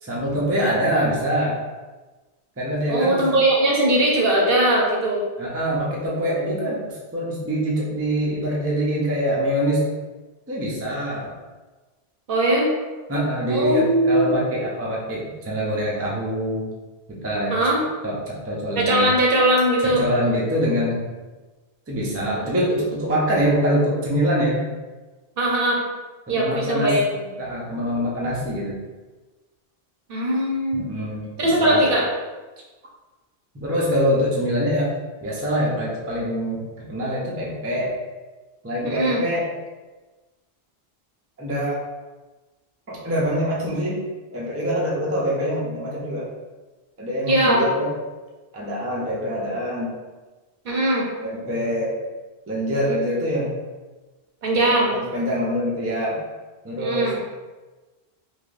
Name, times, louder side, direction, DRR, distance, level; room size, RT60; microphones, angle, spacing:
voice 1, 0.0-1.6 2.6-3.3 5.4-9.8 10.5-11.3 13.1-16.7 17.1-17.5 18.0-19.1 19.8-21.0 21.9-24.6 26.3-27.0 27.4-28.8 30.7-31.9 33.5-34.9 35.2-37.9 38.6-39.5 41.4-41.8 42.9-44.0 44.3-46.3 47.0-48.0 48.5-50.0 51.2-51.9 52.5-53.5 54.6-56.2 56.6-57.3, equal, 20° right, -5 dB, 0.5 m, -24 dB
voice 2, 2.9-5.2 12.3-12.7 13.5-14.3 17.5-17.8 18.8-20.0 25.4-25.8 26.3-27.0 30.1-30.9 31.4-32.0 38.8-39.2 47.3-47.6 50.6-51.1 54.4-55.0 56.8-57.2, right 1 dB, 60° right, -2 dB, 0.9 m, -20 dB
3.6 x 2.8 x 2.5 m, 1.2 s
omnidirectional pair, 1.1 m